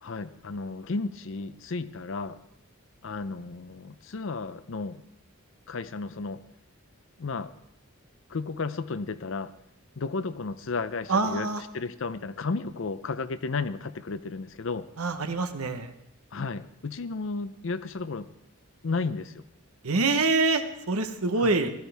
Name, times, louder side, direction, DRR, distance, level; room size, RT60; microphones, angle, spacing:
voice 1, 0.0-2.4 3.0-5.0 5.7-6.4 7.2-7.5 8.3-9.5 10.0-11.5 11.7-14.9 16.3-18.3 18.8-19.4 21.4-21.5, left 4 dB, 60° left, 14 dB, 0.5 m, -33 dB
voice 2, 11.1-11.6 15.0-15.9 19.8-21.7, right 3 dB, 85° right, 8 dB, 1.0 m, -25 dB
16.0 x 13.0 x 3.5 m, 0.82 s
head